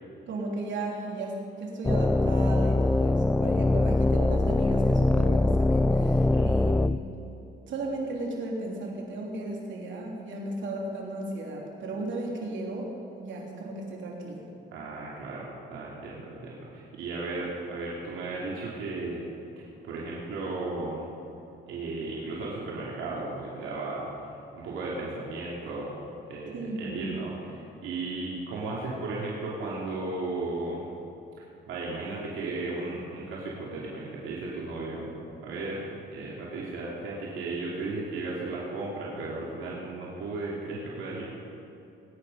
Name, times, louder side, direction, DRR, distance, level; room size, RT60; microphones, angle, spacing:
voice 1, 0.3-6.8 7.2-7.3 7.7-12.9 13.2-14.4 26.5-27.1, right 2 dB, 70° right, -2 dB, 3.2 m, -35 dB
sound 1, 1.8-7.0, left 2 dB, 10° left, 0.4 m, -23 dB
voice 2, 6.2-6.5 14.7-19.3 19.6-21.1 21.7-24.3 24.6-25.9 26.3-30.8 31.7-35.1 35.4-41.3, right 3 dB, 90° right, -5 dB, 2.5 m, -35 dB
20.5 x 9.7 x 5.3 m, 2.9 s
cardioid pair, 90°, 20 cm